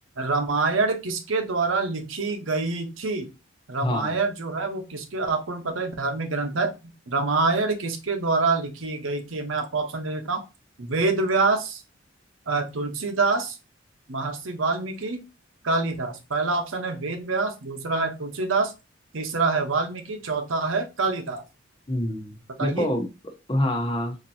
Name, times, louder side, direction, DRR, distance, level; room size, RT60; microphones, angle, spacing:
voice 1, 0.2-3.3 3.7-6.7 7.1-10.4 10.8-11.8 12.5-13.6 14.1-15.2 15.6-18.7 19.1-21.4 22.6-22.9, right 3 dB, 85° right, 0.9 m, -26 dB
voice 2, 3.8-4.2 21.9-23.1 23.5-24.2, left 1 dB, 25° left, 1.0 m, -26 dB
4.3 x 2.8 x 2.6 m
head